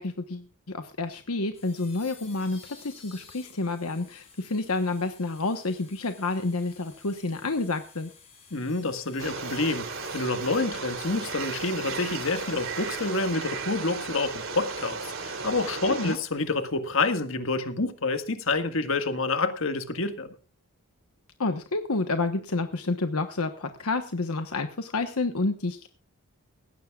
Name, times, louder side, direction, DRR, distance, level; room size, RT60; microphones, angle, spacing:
voice 1, 0.0-8.1 15.9-16.2 21.4-25.9, left 3 dB, 80° left, 1.2 m, -29 dB
sound 1, 1.5-16.7, left 5 dB, 30° left, 6.4 m, -53 dB
voice 2, 8.5-9.9 10.1-20.3, left 3 dB, 60° left, 1.8 m, -28 dB
sound 2, 9.2-16.2, right 4 dB, 65° right, 3.2 m, -35 dB
18.5 x 16.0 x 2.4 m
head